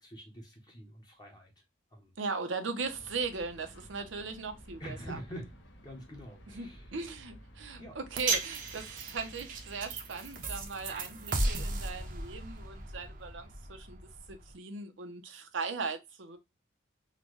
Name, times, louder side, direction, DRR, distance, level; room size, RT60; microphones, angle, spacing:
voice 1, 0.0-1.5 1.9-2.1 4.8-5.6 5.8-6.9 7.8-8.0, equal, 20° left, 0.9 m, -46 dB
voice 2, 2.2-5.2 6.5-14.0 14.3-16.4, right 4 dB, 90° right, 0.7 m, -38 dB
sound 1, 2.8-11.9, equal, 75° left, 0.9 m, -53 dB
sound 2, 8.2-14.5, right 3 dB, 45° right, 0.6 m, -36 dB
3.8 x 2.2 x 3.0 m
head